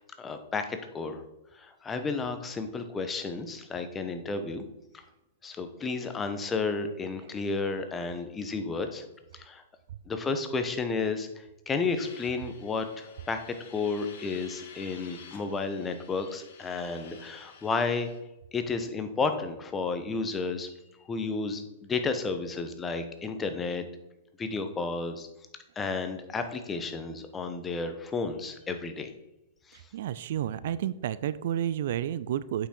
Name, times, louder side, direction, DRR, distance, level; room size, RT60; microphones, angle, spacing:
voice 1, 0.2-1.2 1.5-4.6 4.9-5.0 5.4-9.0 9.3-9.6 10.1-13.4 13.7-18.1 18.5-20.7 21.1-23.8 24.4-25.3 25.8-29.1 29.7-29.8, left 4 dB, 20° left, 8 dB, 1.1 m, -32 dB
sound 1, 11.9-18.2, left 6 dB, 55° left, 1.6 m, -51 dB
voice 2, 29.9-32.7, right 10 dB, 60° right, 16 dB, 0.4 m, -31 dB
8.1 x 5.9 x 4.5 m, 0.94 s
figure-of-eight pair, 105°, 0 cm